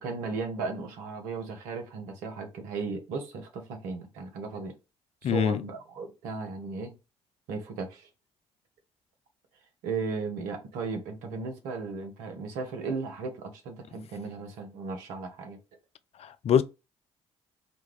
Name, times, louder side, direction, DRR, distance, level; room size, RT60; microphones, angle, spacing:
voice 1, 0.0-4.7 5.2-6.9 7.5-8.1 9.8-15.6, right 4 dB, 75° right, 0.9 m, -36 dB
voice 2, 5.2-5.6 16.2-16.6, left 9 dB, 45° left, 0.4 m, -24 dB
4.1 x 2.3 x 3.2 m
hypercardioid pair, 50°, 14 cm